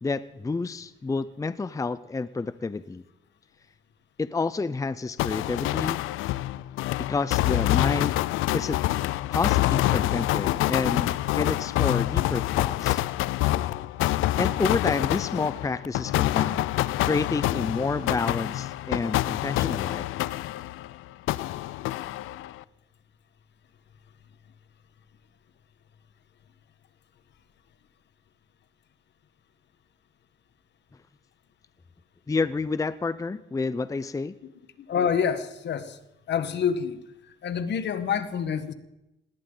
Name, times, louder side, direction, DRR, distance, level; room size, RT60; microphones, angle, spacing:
voice 1, 0.0-3.0 4.2-6.0 7.1-8.2 8.5-8.8 9.3-13.0 14.4-16.7 17.0-20.1 32.3-34.4, left 4 dB, 15° left, 14 dB, 0.6 m, -29 dB
sound 1, 5.2-20.9 21.3-22.6, left 16 dB, 90° left, 0.5 m, -26 dB
voice 2, 34.8-36.0 36.3-37.0 37.4-38.7, left 7 dB, 60° left, 11 dB, 1.3 m, -27 dB
19.0 x 17.5 x 3.9 m, 0.93 s
cardioid pair, 90°, 20 cm